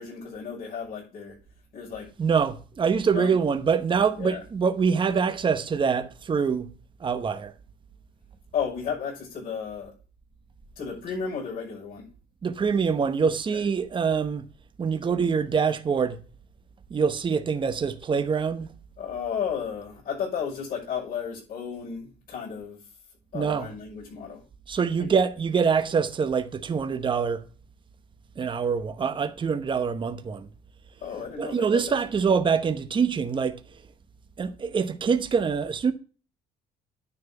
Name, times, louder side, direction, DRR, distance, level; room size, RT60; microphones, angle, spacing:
voice 1, 0.0-1.4 1.7-2.1 3.1-3.3 4.2-4.4 8.5-9.9 10.8-12.1 13.5-13.6 19.0-22.8 23.3-24.4 25.0-25.1 31.0-31.8 32.2-32.3, left 7 dB, 55° left, 5.8 m, -33 dB
voice 2, 2.2-6.7 7.0-7.5 12.4-14.5 14.8-16.2 16.9-18.7 23.3-23.7 24.7-27.4 28.4-30.5 31.4-33.6 34.4-35.9, right 6 dB, 30° right, 0.9 m, -25 dB
9.8 x 4.4 x 7.0 m
cardioid pair, 110°, 17 cm